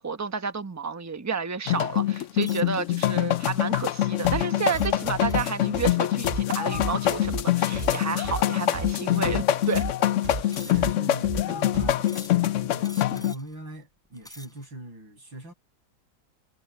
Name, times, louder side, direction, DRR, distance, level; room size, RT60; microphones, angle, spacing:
voice 1, 0.0-9.9, right 5 dB, 15° right, 0.6 m, -31 dB
sound 1, 1.7-13.3, left 12 dB, 85° left, 0.6 m, -25 dB
sound 2, 2.4-2.8 3.5-3.7 4.7-5.7 7.8-8.2 9.0-9.1 9.6-10.1 10.5-11.1 12.0-12.5 12.8-13.6 14.1-14.7, equal, ahead, 4.6 m, -47 dB
sound 3, 4.2-12.2, right 2 dB, 30° right, 2.2 m, -34 dB
voice 2, 10.3-15.5, right 1 dB, 75° right, 8.7 m, -42 dB
omnidirectional pair, 2.1 m